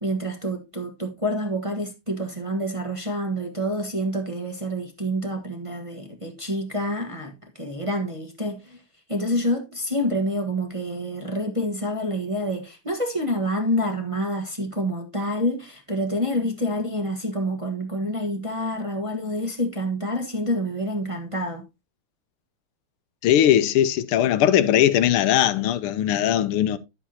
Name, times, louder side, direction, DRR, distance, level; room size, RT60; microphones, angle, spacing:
voice 1, 0.0-8.8 9.1-21.6, equal, 20° right, 1.1 m, -27 dB
voice 2, 23.2-26.8, left 11 dB, 90° left, 1.6 m, -19 dB
11.0 x 7.8 x 2.8 m
omnidirectional pair, 2.4 m